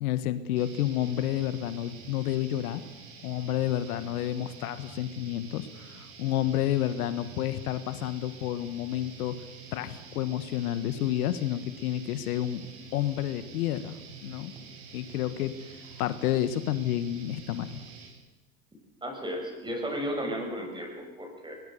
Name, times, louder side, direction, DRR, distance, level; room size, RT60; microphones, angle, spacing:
voice 1, 0.0-2.8 3.2-9.4 9.7-12.7 12.9-14.0 14.2-14.5 14.9-15.6 16.0-17.8, left 12 dB, 80° left, 13 dB, 1.4 m, -30 dB
sound 1, 0.5-18.1, right 5 dB, 60° right, 8.0 m, -48 dB
voice 2, 19.0-21.6, equal, 10° right, 3 dB, 6.7 m, -34 dB
22.0 x 20.5 x 6.9 m, 1.1 s
supercardioid pair, 110°, 43 cm